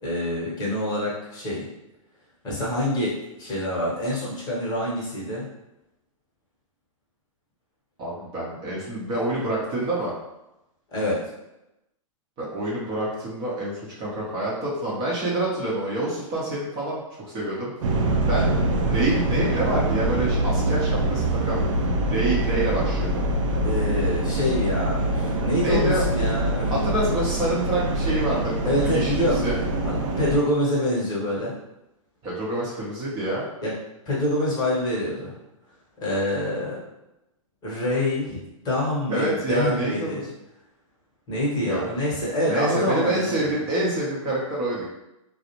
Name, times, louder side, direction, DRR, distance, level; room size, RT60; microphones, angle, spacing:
voice 1, 0.0-1.7 2.4-5.5 10.9-11.2 23.6-26.7 28.6-29.4 29.8-31.5 33.6-33.7 34.1-35.3 36.0-36.8 37.6-40.3 41.3-43.6, left 1 dB, 25° left, -6 dB, 0.9 m, -26 dB
voice 2, 8.0-10.1 12.4-17.7 18.3-18.5 18.8-21.6 22.1-23.2 25.6-26.0 26.7-29.6 32.2-33.4 39.1-40.3 41.6-41.8 42.5-44.9, right 1 dB, 30° right, -5 dB, 0.7 m, -27 dB
sound 1, 17.8-30.4, right 1 dB, 65° right, 0.5 m, -24 dB
2.3 x 2.0 x 2.9 m, 0.91 s
hypercardioid pair, 120°, 18 cm